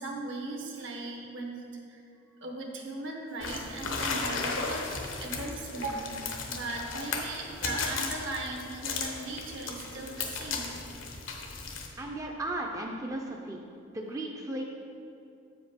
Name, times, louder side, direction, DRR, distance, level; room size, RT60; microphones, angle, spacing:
voice 1, 0.0-2.0 2.4-4.9 5.2-10.7, right 2 dB, 70° right, 1 dB, 1.1 m, -38 dB
sound 1, 3.4-11.9, left 4 dB, 75° left, 0.9 m, -35 dB
voice 2, 12.0-13.6 13.9-14.6, right 1 dB, 15° right, 0 dB, 0.4 m, -35 dB
7.9 x 5.0 x 5.0 m, 2.6 s
head